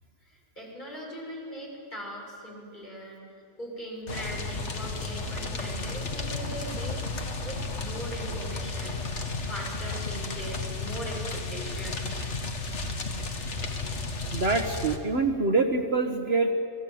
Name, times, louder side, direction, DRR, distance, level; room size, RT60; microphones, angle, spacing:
voice 1, 0.2-3.2 3.6-7.0 7.4-9.0 9.5-12.1, right 1 dB, 35° left, -2 dB, 7.2 m, -40 dB
sound 1, 4.1-15.0, left 3 dB, 55° left, 2.1 m, -33 dB
voice 2, 14.3-16.5, right 3 dB, 50° right, 6 dB, 1.5 m, -25 dB
30.0 x 19.5 x 9.3 m, 2.5 s
omnidirectional pair, 1.4 m